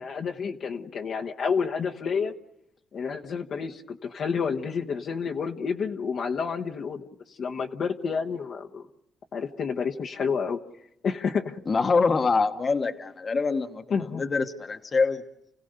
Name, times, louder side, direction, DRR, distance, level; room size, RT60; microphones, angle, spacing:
voice 1, 0.0-2.3 2.9-7.1 7.4-8.8 9.3-10.6 11.0-11.6 13.9-14.2, left 6 dB, 60° left, 1.1 m, -29 dB
voice 2, 11.7-13.8 14.1-15.2, left 4 dB, 35° left, 1.2 m, -24 dB
29.0 x 16.5 x 6.7 m
cardioid pair, 90°, 0 cm